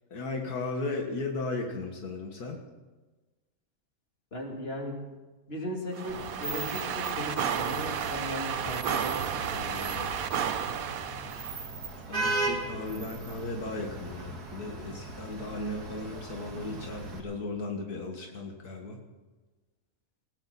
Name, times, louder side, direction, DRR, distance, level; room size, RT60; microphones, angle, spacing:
voice 1, 0.1-2.6 12.1-19.0, left 2 dB, 80° left, 2 dB, 2.1 m, -36 dB
voice 2, 4.3-5.0 5.5-10.1, left 1 dB, 40° left, 0 dB, 3.3 m, -37 dB
sound 1, 5.9-11.6, right 8 dB, 70° right, 1.3 m, -32 dB
Vehicle horn car horn honking / Traffic noise roadway noise, 6.1-17.2, right 2 dB, 85° right, 2.6 m, -38 dB
20.5 x 16.5 x 4.2 m, 1.2 s
omnidirectional pair, 1.6 m